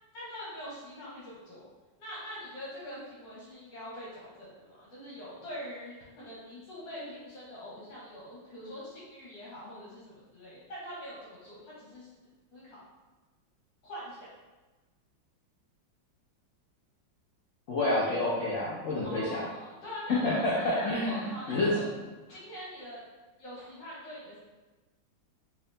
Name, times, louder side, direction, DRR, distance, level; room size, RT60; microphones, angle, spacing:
voice 1, 0.1-1.7 2.0-12.1 12.5-12.8 13.8-14.3 19.0-21.8 22.3-23.0 23.4-24.4, equal, 70° left, -7 dB, 1.6 m, -43 dB
voice 2, 17.7-19.4 20.1-21.2 21.5-21.7, left 2 dB, 85° left, -7 dB, 0.6 m, -28 dB
3.6 x 2.8 x 3.2 m, 1.2 s
omnidirectional pair, 2.1 m